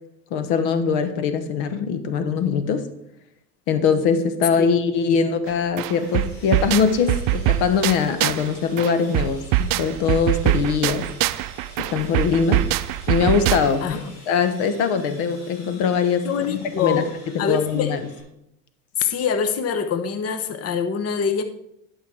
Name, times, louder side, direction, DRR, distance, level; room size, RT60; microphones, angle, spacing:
voice 1, 0.3-2.9 3.7-11.1 11.8-12.7 13.1-17.0 17.3-18.0, left 6 dB, 65° left, 11 dB, 1.2 m, -22 dB
sound 1, 5.5-5.6 5.8-8.5 8.8-13.9, right 15 dB, 50° right, 0.5 m, -23 dB
Sawing, 5.9-18.2, left 1 dB, 85° left, 4.1 m, -47 dB
voice 2, 16.2-17.1 17.4-18.0 19.0-21.4, left 6 dB, 35° left, 9 dB, 0.9 m, -24 dB
11.5 x 5.9 x 4.7 m, 0.78 s
hypercardioid pair, 85°, 43 cm